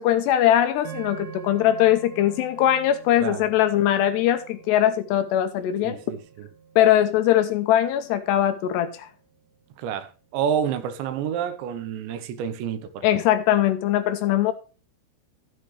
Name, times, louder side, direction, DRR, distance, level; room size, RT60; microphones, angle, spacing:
voice 1, 0.0-6.0 6.8-9.1 13.0-14.5, left 12 dB, 80° left, 2.8 m, -21 dB
sound 1, 0.8-9.2, right 7 dB, 35° right, 1.6 m, -45 dB
voice 2, 5.8-6.5 9.8-13.1, right 8 dB, 75° right, 3.1 m, -29 dB
14.0 x 8.3 x 3.3 m
omnidirectional pair, 5.3 m